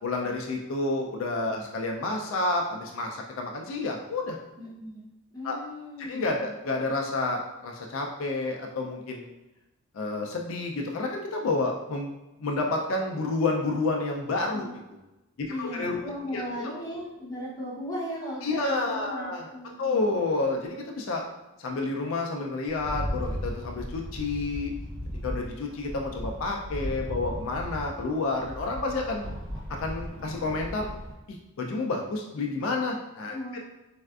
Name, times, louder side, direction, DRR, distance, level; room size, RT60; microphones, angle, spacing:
voice 1, 0.0-4.4 5.4-5.6 6.0-9.3 9.9-12.1 12.4-14.7 15.4-16.0 16.3-16.8 18.4-19.5 19.8-21.2 21.6-24.7 25.2-29.2 29.8-30.9 31.3-33.6, left 3 dB, 70° left, 1 dB, 0.3 m, -30 dB
voice 2, 4.6-5.1 5.3-6.6 14.6-14.7 15.5-20.0 33.3-33.6, equal, 15° left, -7 dB, 0.7 m, -37 dB
Rattle, 22.7-31.1, equal, 60° right, 0.8 m, -36 dB
3.4 x 2.4 x 2.3 m, 0.98 s
head